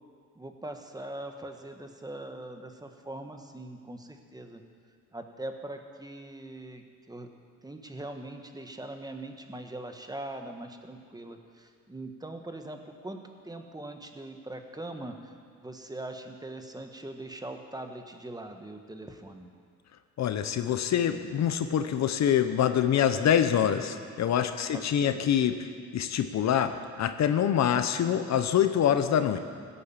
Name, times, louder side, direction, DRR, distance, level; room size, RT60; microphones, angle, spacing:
voice 1, 0.3-4.6 5.1-7.3 7.6-19.5 24.7-25.2, right 1 dB, 15° right, 5 dB, 1.3 m, -41 dB
voice 2, 20.2-25.6 25.9-29.4, left 9 dB, 60° left, 9 dB, 0.9 m, -25 dB
16.5 x 8.7 x 7.3 m, 2.1 s
cardioid pair, 90°, 30 cm